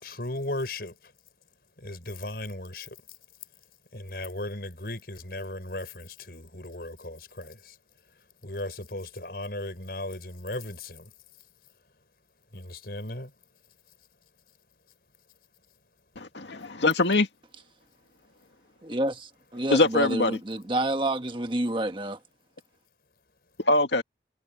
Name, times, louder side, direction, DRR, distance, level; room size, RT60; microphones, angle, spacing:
voice 1, 0.0-0.9 1.8-3.0 3.9-7.8 8.4-11.1 12.5-13.3, left 1 dB, 60° left, 5.4 m, -36 dB
voice 2, 16.2-17.3 19.7-20.4 23.7-24.0, left 2 dB, 90° left, 2.2 m, -23 dB
voice 3, 18.8-22.2, right 1 dB, 30° right, 1.4 m, -29 dB
head